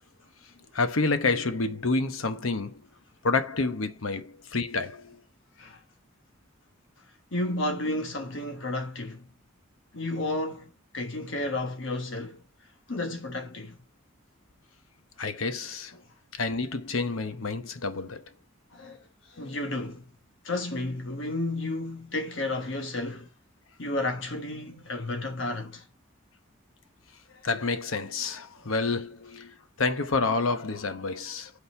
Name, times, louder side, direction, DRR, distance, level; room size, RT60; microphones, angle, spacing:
voice 1, 0.7-2.7 3.2-5.2 15.2-15.9 16.4-18.2 27.4-31.5, left 3 dB, 85° left, 1.0 m, -28 dB
voice 2, 7.3-9.3 9.9-12.4 12.9-13.8 18.7-20.1 20.4-23.3 23.8-25.8, left 2 dB, 65° left, 1.3 m, -32 dB
8.3 x 4.2 x 4.4 m
head